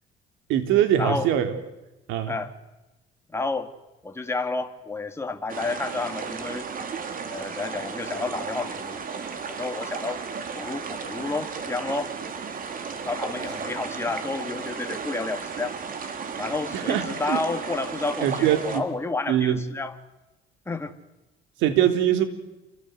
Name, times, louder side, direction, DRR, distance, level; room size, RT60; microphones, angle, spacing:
voice 1, 0.5-1.5 2.1-2.3 16.7-17.4 18.2-18.8 19.3-19.6 21.6-22.2, right 10 dB, 85° right, 3.6 m, -22 dB
voice 2, 3.3-3.7 4.0-6.7 7.3-9.0 9.5-10.2 10.5-12.1 13.0-15.8 16.4-20.0 20.7-20.9, left 3 dB, 15° left, 2.8 m, -30 dB
sound 1, 5.5-18.8, right 5 dB, 45° right, 3.9 m, -34 dB
29.0 x 24.5 x 8.2 m
cardioid pair, 105°, 19 cm